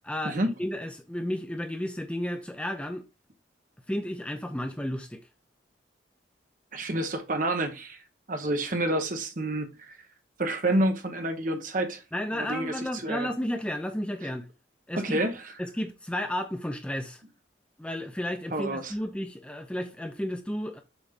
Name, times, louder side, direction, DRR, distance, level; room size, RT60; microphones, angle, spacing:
voice 1, 0.0-3.0 3.9-5.3 12.1-14.5 14.9-15.2 15.6-17.2 17.8-20.8, left 1 dB, 5° left, 0.5 m, -32 dB
voice 2, 6.7-8.0 8.3-10.0 10.4-12.0 12.4-12.7 13.0-13.3 14.9-15.4 18.5-18.9, right 1 dB, 45° right, 1.0 m, -28 dB
7.2 x 4.1 x 3.6 m
head